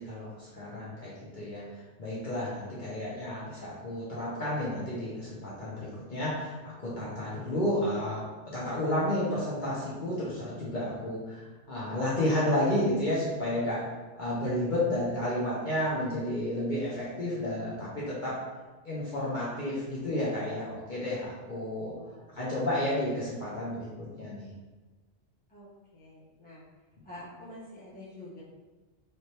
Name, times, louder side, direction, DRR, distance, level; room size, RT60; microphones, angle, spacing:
voice 1, 0.0-13.9 14.2-18.4 18.8-21.9 22.3-24.5, left 1 dB, 45° left, -8 dB, 0.9 m, -31 dB
voice 2, 21.9-22.2 25.5-25.7 25.9-26.6 27.0-28.4, left 1 dB, 10° left, -8 dB, 0.8 m, -47 dB
3.3 x 3.1 x 2.8 m, 1.2 s
omnidirectional pair, 1.2 m